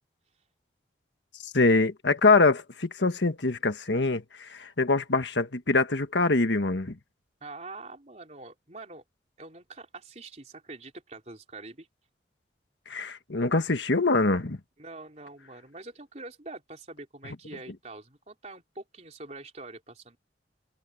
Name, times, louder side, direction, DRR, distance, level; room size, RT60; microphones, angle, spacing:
voice 1, 1.4-7.0 12.9-14.6, left 3 dB, 85° left, 1.5 m, -24 dB
voice 2, 7.4-9.0 9.4-11.9 14.8-20.2, right 2 dB, 40° right, 3.9 m, -44 dB
head